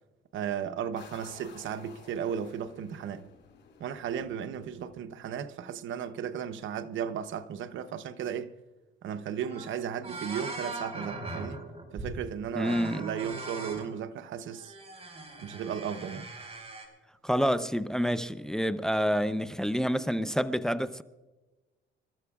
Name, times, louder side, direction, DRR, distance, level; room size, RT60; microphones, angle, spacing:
voice 1, 0.3-3.3 3.8-8.5 9.0-11.6 11.9-14.7 15.4-16.3, right 8 dB, 75° right, 0.8 m, -35 dB
sound 1, 1.0-5.5, left 6 dB, 60° left, 6.0 m, -54 dB
sound 2, 9.4-9.7 10.0-12.2 12.6-13.9 14.5-16.9, right 2 dB, 30° right, 4.6 m, -40 dB
voice 2, 12.6-13.0 17.2-21.0, equal, 5° left, 0.6 m, -28 dB
28.5 x 13.5 x 2.4 m
cardioid pair, 90°, 20 cm